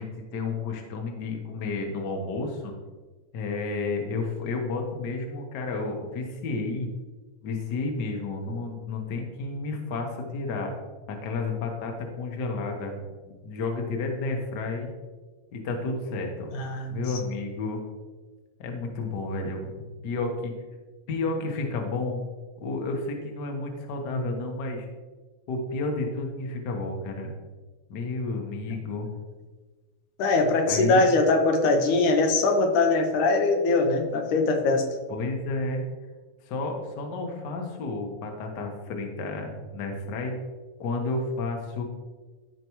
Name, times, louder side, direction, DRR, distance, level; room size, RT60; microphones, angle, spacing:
voice 1, 0.0-2.7 3.3-6.9 7.4-10.7 11.1-14.9 15.5-16.5 16.9-17.8 18.6-20.5 21.1-22.2 22.6-24.9 25.5-27.4 27.9-29.1 30.7-31.1 35.1-35.8 36.5-40.3 40.8-41.8, left 3 dB, 60° left, 2 dB, 1.1 m, -31 dB
voice 2, 16.5-17.0 30.2-34.8, left 3 dB, 85° left, 4 dB, 2.4 m, -22 dB
14.0 x 4.6 x 3.1 m, 1.3 s
omnidirectional pair, 3.5 m